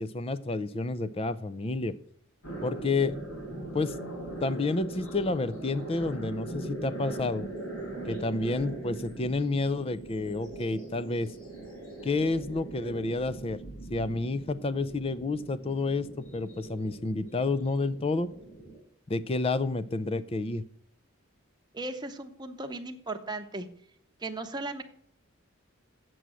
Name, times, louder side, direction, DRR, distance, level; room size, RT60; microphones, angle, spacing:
voice 1, 0.0-2.0 2.6-3.2 3.7-3.9 4.4-7.4 8.1-11.3 12.0-13.6 13.9-18.3 19.1-20.6, left 3 dB, 25° left, 14 dB, 0.4 m, -30 dB
sound 1, 2.4-18.8, right 2 dB, 75° left, 4.6 m, -41 dB
voice 2, 21.7-23.7 24.2-24.8, right 2 dB, 20° right, 5 dB, 0.8 m, -36 dB
8.1 x 6.2 x 7.5 m, 0.68 s
head